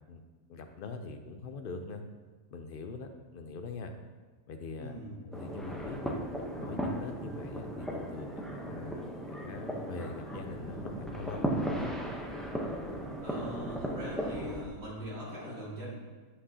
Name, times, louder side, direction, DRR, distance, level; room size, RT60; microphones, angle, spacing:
voice 1, 0.5-2.0 2.5-3.9 4.5-5.0 5.2-6.2 6.6-11.9, left 3 dB, 65° left, 6 dB, 0.5 m, -43 dB
voice 2, 4.8-5.2 13.2-15.9, equal, 65° right, -6 dB, 2.7 m, -41 dB
sound 1, 5.3-14.7, right 1 dB, ahead, 0.4 m, -36 dB
8.6 x 7.7 x 2.8 m, 1.3 s
omnidirectional pair, 1.5 m